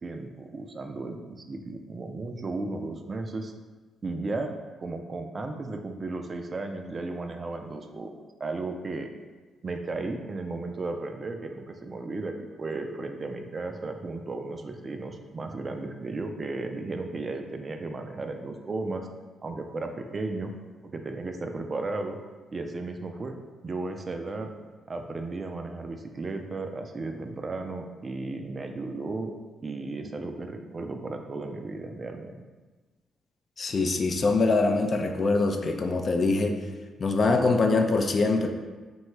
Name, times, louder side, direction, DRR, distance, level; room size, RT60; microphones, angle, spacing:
voice 1, 0.0-3.5 4.0-9.1 9.6-19.1 19.4-20.5 20.8-22.2 22.5-23.4 23.6-24.5 24.9-29.3 29.6-32.4, right 3 dB, 40° right, 5 dB, 0.3 m, -34 dB
voice 2, 33.6-36.6 37.0-38.5, left 3 dB, 50° left, 4 dB, 0.3 m, -23 dB
3.0 x 2.2 x 3.0 m, 1.3 s
hypercardioid pair, 45°, 0 cm